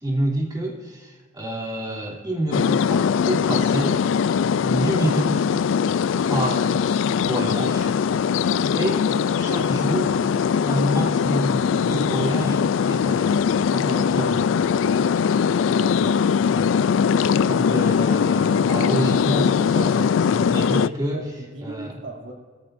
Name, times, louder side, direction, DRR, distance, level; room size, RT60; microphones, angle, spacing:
voice 1, 0.0-4.0 4.6-5.5 6.3-6.7 7.1-7.9 8.7-9.1 9.4-10.2 10.6-12.6 12.9-13.4 13.7-14.5 16.5-21.2 21.6-22.0, right 1 dB, 20° right, -2 dB, 2.9 m, -27 dB
sound 1, 2.5-20.9, left 6 dB, 90° left, 0.3 m, -21 dB
voice 2, 15.6-16.2 21.1-22.3, right 2 dB, 90° right, -1 dB, 2.7 m, -37 dB
23.5 x 14.0 x 2.6 m, 1.4 s
head